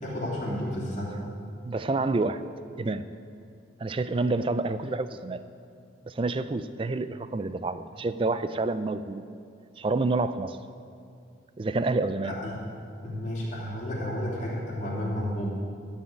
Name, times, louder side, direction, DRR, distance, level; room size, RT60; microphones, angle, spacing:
voice 1, 0.0-1.1 12.2-12.6 13.0-15.5, left 1 dB, 40° left, -6 dB, 2.8 m, -32 dB
voice 2, 1.6-2.4 2.8-3.0 3.8-5.4 6.1-9.2 9.8-10.6 11.6-12.3, right 3 dB, 25° right, 12 dB, 0.3 m, -28 dB
12.5 x 5.5 x 8.3 m, 2.4 s
head